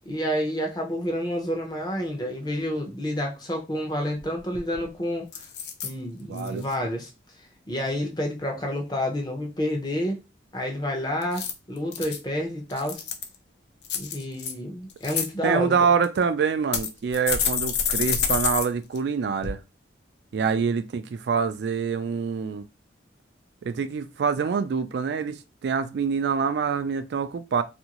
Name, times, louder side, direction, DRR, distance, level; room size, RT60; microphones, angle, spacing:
voice 1, 0.1-5.3 5.8-7.1 7.7-10.2 10.5-13.0 14.0-15.9, equal, 20° left, 0.6 m, -29 dB
sound 1, 4.5-4.9 5.3-5.9 6.4-6.7 11.2-12.2 12.7-13.3 13.8-14.5 14.9-15.3 16.0-16.1 16.7-18.7 18.9-19.0 19.4-19.5, left 7 dB, 65° left, 0.5 m, -28 dB
voice 2, 6.3-6.6 15.4-19.6 20.3-22.6 23.6-27.6, right 6 dB, 65° right, 0.3 m, -25 dB
2.7 x 2.5 x 2.9 m
head